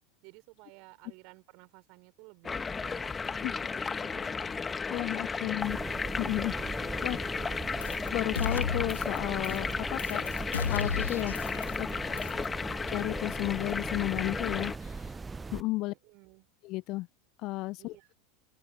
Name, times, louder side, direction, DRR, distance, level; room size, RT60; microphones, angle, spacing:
voice 1, 0.2-4.7 7.1-7.9 11.9-12.5 15.9-16.5 17.8-18.1, right 29 dB, 50° right, 4.0 m, -56 dB
sound 1, 2.4-14.8, left 5 dB, 20° left, 1.7 m, -34 dB
voice 2, 4.9-5.8 6.2-6.5 7.0-7.2 8.1-10.3 10.7-11.9 12.9-15.1 15.5-15.9 16.6-17.1 17.4-18.1, left 20 dB, 45° left, 0.8 m, -33 dB
sound 2, 5.6-15.6, right 4 dB, 15° right, 0.8 m, -40 dB
sound 3, 7.8-8.1 8.3-9.2 9.4-9.7 10.0-11.9 12.2-12.4, left 7 dB, 75° left, 0.3 m, -34 dB
open air
figure-of-eight pair, 85°, 0 cm